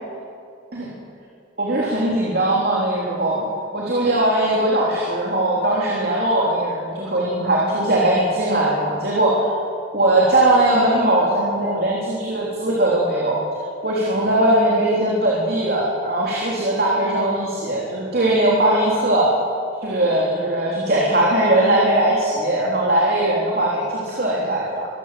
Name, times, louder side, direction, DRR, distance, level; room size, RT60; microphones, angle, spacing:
voice 1, 1.6-3.4 3.7-9.4 9.9-13.4 13.8-19.3 19.8-24.9, right 1 dB, 50° right, -4 dB, 3.4 m, -20 dB
23.5 x 15.5 x 7.6 m, 2.5 s
head